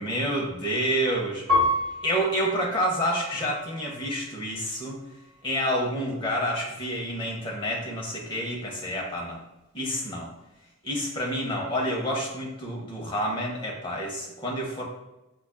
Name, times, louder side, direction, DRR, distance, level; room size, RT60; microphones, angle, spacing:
voice 1, 0.0-1.4 2.0-5.0 5.4-9.4 9.7-10.3 10.8-14.8, equal, 20° left, -2 dB, 0.7 m, -28 dB
Piano, 1.5-4.2 4.9-5.6, left 2 dB, 25° right, 1.0 m, -30 dB
5.0 x 2.3 x 2.2 m, 0.97 s
head